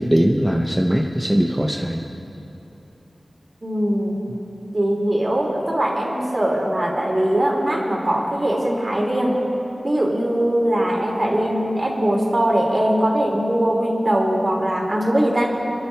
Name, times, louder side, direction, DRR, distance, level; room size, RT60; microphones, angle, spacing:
voice 1, 0.0-2.0, equal, 10° right, 0 dB, 0.9 m, -20 dB
voice 2, 3.6-4.2 4.7-9.4 9.8-15.5, right 1 dB, 45° right, -1 dB, 3.0 m, -21 dB
28.0 x 11.0 x 3.4 m, 3.0 s
cardioid pair, 45°, 0 cm